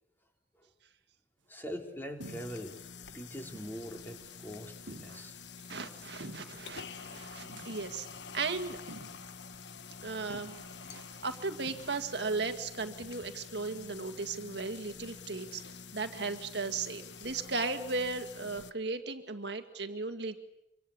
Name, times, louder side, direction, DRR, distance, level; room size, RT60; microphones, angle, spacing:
voice 1, 1.5-2.8 3.1-5.4 18.4-18.5, equal, 10° left, 3 dB, 3.5 m, -43 dB
sound 1, 2.2-18.7, left 5 dB, 65° left, 1.2 m, -48 dB
sound 2, 2.2-2.8 3.1-3.2 3.5-3.8 4.2-4.3 4.9-5.4 6.2-6.7 7.5-8.0 8.9-9.3 9.6-9.7 10.3-11.2 11.7-12.3, right 2 dB, 80° right, 1.4 m, -49 dB
voice 2, 5.7-8.1 8.3-8.8 10.0-10.6 10.9-15.6 15.9-20.4, right 3 dB, 60° right, 6 dB, 2.0 m, -36 dB
26.0 x 25.5 x 8.6 m, 0.85 s
head